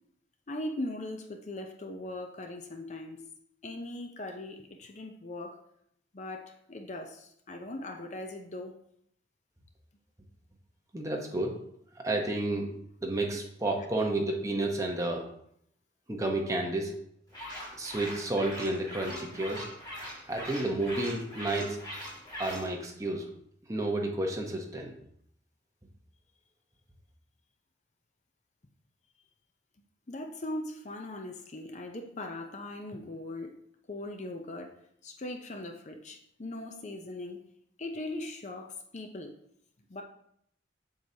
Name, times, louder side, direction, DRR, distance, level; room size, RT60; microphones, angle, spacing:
voice 1, 0.5-3.2 3.6-5.6 6.1-8.7 30.1-33.5 33.9-34.8 35.0-37.4 37.8-39.3 39.9-40.0, left 1 dB, 40° left, 4 dB, 0.6 m, -39 dB
voice 2, 10.9-11.6 12.0-12.7 13.0-15.3 16.1-16.9 17.7-19.7 20.3-21.8 22.4-23.2 23.7-24.9, right 2 dB, 15° right, 0 dB, 0.9 m, -31 dB
sound 1, 17.3-22.7, equal, 25° left, 2.5 m, -42 dB
7.6 x 6.6 x 2.8 m, 0.72 s
head